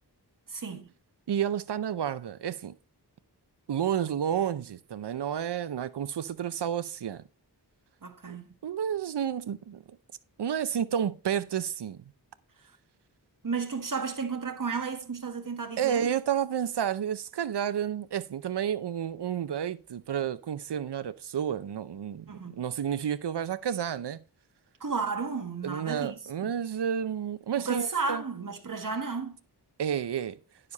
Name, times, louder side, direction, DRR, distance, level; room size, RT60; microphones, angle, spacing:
voice 1, 0.5-0.9 8.0-8.5 13.4-16.1 22.3-22.6 24.8-26.5 27.6-29.4, right 5 dB, 50° right, 1.5 m, -33 dB
voice 2, 1.3-2.7 3.7-7.2 8.3-8.4 8.6-10.0 10.4-12.0 15.8-24.2 25.6-28.2 29.8-30.4, right 9 dB, 70° right, 0.6 m, -31 dB
9.9 x 6.8 x 3.9 m
wide cardioid pair, 70°, 42 cm